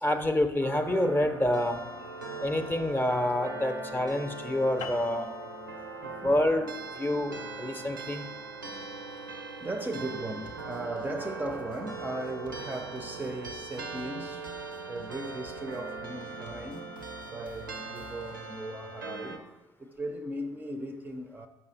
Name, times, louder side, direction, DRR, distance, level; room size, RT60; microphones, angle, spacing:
voice 1, 0.0-1.8 2.4-5.3 6.2-6.7 7.0-8.3, left 1 dB, 20° left, 0.7 m, -27 dB
sound 1, 0.6-19.4, right 3 dB, 85° right, 0.6 m, -40 dB
sound 2, 4.8-9.5, left 7 dB, 50° left, 0.5 m, -48 dB
voice 2, 5.8-6.4 9.1-14.6 14.9-17.0 17.3-19.4 19.8-21.5, right 1 dB, 15° right, 0.5 m, -38 dB
sound 3, 10.4-18.5, right 2 dB, 90° left, 0.8 m, -53 dB
7.1 x 5.5 x 4.1 m
figure-of-eight pair, 50°, 11 cm